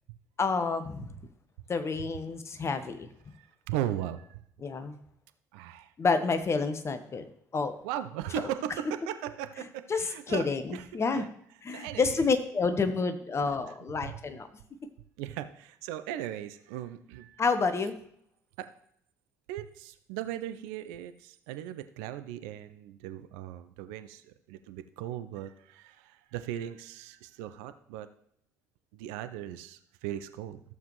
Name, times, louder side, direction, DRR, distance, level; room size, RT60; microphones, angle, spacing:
voice 1, 0.4-1.1 1.7-3.1 4.6-5.0 6.0-7.2 7.5-7.7 8.4-8.5 9.9-11.2 11.6-14.5 17.4-18.0, left 4 dB, 35° left, 9 dB, 1.1 m, -29 dB
voice 2, 3.4-4.4 5.5-5.9 7.8-11.3 11.7-12.3 13.4-13.5 14.0-14.2 15.2-17.4 18.6-18.7 19.5-28.1 28.9-30.6, right 11 dB, 65° right, 10 dB, 0.6 m, -38 dB
14.5 x 7.1 x 3.1 m, 0.70 s
figure-of-eight pair, 50°, 8 cm